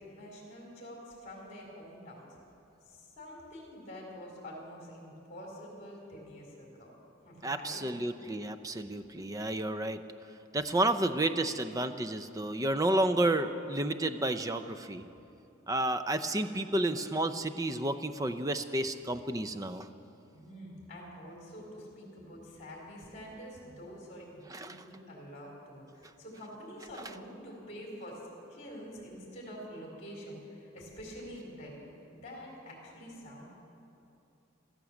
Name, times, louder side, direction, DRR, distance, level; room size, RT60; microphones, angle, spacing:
voice 1, 0.0-2.3 2.8-6.9 7.2-7.8 20.3-28.2 28.5-31.7 32.1-33.5, equal, 35° left, -3 dB, 3.6 m, -47 dB
voice 2, 7.4-10.0 10.5-15.0 15.7-19.9 24.5-24.8, right 1 dB, 15° right, 10 dB, 0.5 m, -31 dB
14.5 x 14.0 x 7.2 m, 2.8 s
head